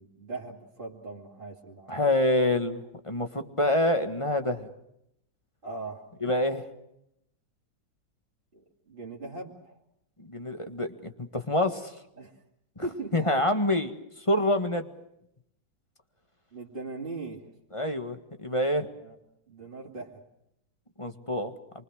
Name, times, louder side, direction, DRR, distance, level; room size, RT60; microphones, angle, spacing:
voice 1, 0.0-2.0 5.6-6.1 8.5-9.8 12.2-12.4 12.8-13.4 16.5-17.5 19.0-19.2 19.5-20.2, right 2 dB, 30° right, -4 dB, 3.0 m, -39 dB
voice 2, 1.9-4.7 6.2-6.7 10.2-11.9 13.1-14.9 17.7-18.9 21.0-21.5, left 1 dB, 20° left, 7 dB, 1.6 m, -27 dB
27.5 x 24.0 x 6.5 m, 0.79 s
omnidirectional pair, 1.9 m